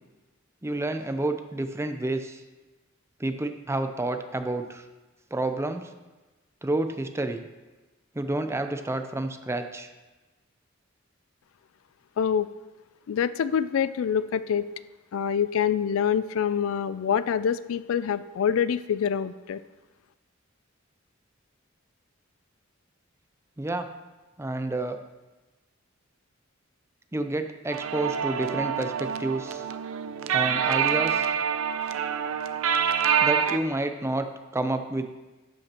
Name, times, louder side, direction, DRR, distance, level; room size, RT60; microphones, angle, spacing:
voice 1, 0.6-2.4 3.2-4.8 5.3-5.9 6.6-7.4 8.1-9.9 23.6-23.9 24.4-25.0 27.1-29.6 30.3-31.3 33.2-35.1, right 2 dB, 15° right, 8 dB, 0.5 m, -29 dB
voice 2, 12.2-12.5 13.1-14.7 15.1-19.6, left 8 dB, 80° left, 15 dB, 0.3 m, -26 dB
sound 1, 27.7-33.6, right 7 dB, 80° right, 0.5 m, -26 dB
12.0 x 8.1 x 2.9 m, 1.1 s
head